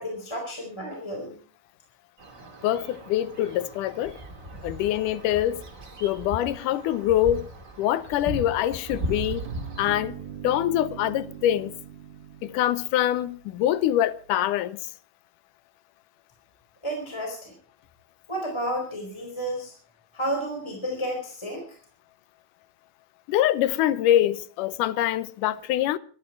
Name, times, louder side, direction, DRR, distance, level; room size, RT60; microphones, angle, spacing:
voice 1, 0.0-1.3 16.8-17.5 18.3-19.7 20.1-21.6, right 1 dB, 10° left, 4.1 m, -31 dB
sound 1, 2.2-9.9, equal, 25° right, 2.5 m, -38 dB
voice 2, 2.6-4.2 4.6-5.6 6.0-7.5 7.8-9.5 9.8-10.1 10.4-11.7 12.4-14.8 23.3-26.0, left 12 dB, 85° left, 2.4 m, -24 dB
sound 2, 8.9-13.7, right 9 dB, 75° right, 2.5 m, -41 dB
24.5 x 11.5 x 4.5 m
omnidirectional pair, 3.6 m